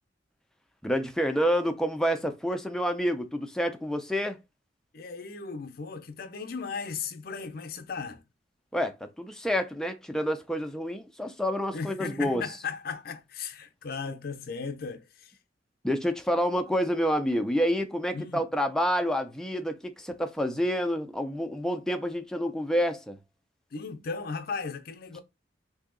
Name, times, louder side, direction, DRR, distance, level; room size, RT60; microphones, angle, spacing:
voice 1, 0.8-4.4 8.7-12.4 15.8-23.2, equal, 5° left, 0.4 m, -28 dB
voice 2, 4.9-8.2 11.7-15.4 18.1-18.5 23.7-25.2, left 5 dB, 55° left, 0.5 m, -36 dB
2.7 x 2.7 x 3.7 m
head